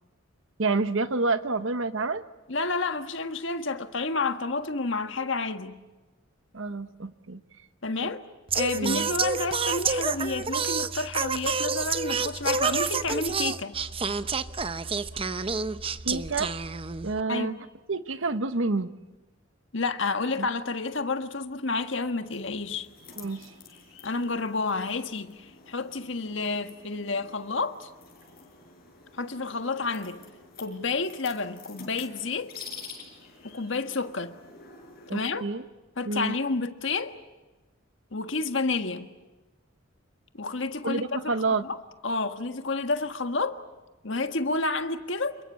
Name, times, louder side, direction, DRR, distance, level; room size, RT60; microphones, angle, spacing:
voice 1, 0.6-2.2 6.5-7.4 8.0-8.1 8.8-9.1 16.0-16.5 17.0-17.5 17.9-18.9 23.2-23.5 35.1-35.6 36.0-36.4 40.8-41.6, right 3 dB, 75° right, 1.0 m, -28 dB
voice 2, 2.5-5.8 7.8-8.2 8.5-13.8 17.3-17.6 19.7-22.9 24.0-27.9 29.1-30.2 30.6-32.6 33.4-34.3 35.1-35.5 36.0-37.2 38.1-39.1 40.3-41.1 41.6-41.8 42.0-43.6 44.0-45.4, left 3 dB, 65° left, 1.6 m, -30 dB
Singing, 8.5-17.2, right 5 dB, 25° right, 0.8 m, -29 dB
sound 1, 22.3-35.2, left 5 dB, 50° left, 6.9 m, -49 dB
28.0 x 22.5 x 8.5 m
head